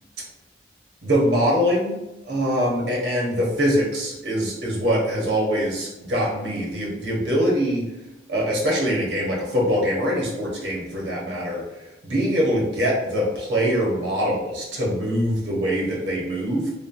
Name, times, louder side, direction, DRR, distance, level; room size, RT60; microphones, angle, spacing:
voice 1, 1.0-2.0 2.3-7.8 8.3-11.6 12.1-16.7, equal, 90° right, -4 dB, 1.0 m, -23 dB
3.1 x 2.2 x 2.5 m, 0.97 s
head